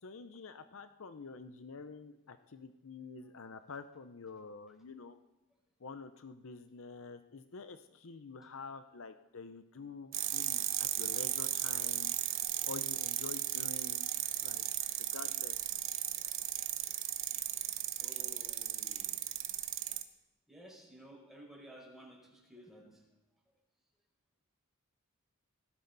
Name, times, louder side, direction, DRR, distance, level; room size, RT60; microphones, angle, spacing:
voice 1, 0.0-5.2 5.8-12.1 12.6-14.1 14.4-14.6 15.0-15.5, left 4 dB, 65° left, 10 dB, 0.7 m, -48 dB
sound 1, 10.1-20.0, right 12 dB, 60° right, 1.0 m, -35 dB
voice 2, 18.0-19.2 20.5-23.0, equal, ahead, -2 dB, 5.1 m, -55 dB
19.0 x 15.5 x 4.0 m, 0.98 s
head